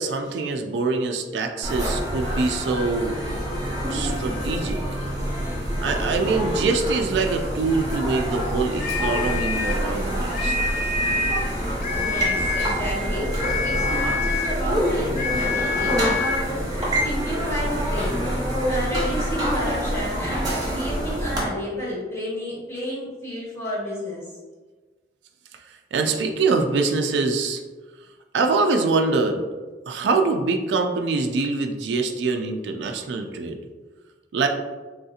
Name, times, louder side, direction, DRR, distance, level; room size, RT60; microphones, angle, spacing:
voice 1, 0.0-3.2 3.9-4.8 5.8-10.6 25.9-27.6 28.3-29.4 29.9-33.6 34.3-34.5, right 3 dB, 80° right, 4 dB, 0.3 m, -24 dB
sound 1, 1.6-21.4, equal, 20° right, 0.8 m, -26 dB
sound 2, 8.8-9.9 10.3-11.5 11.8-12.8 13.4-14.6 15.1-16.5, left 4 dB, 45° left, 0.5 m, -27 dB
voice 2, 11.9-24.2, equal, 15° left, -6 dB, 1.0 m, -31 dB
3.5 x 2.7 x 2.4 m, 1.3 s
head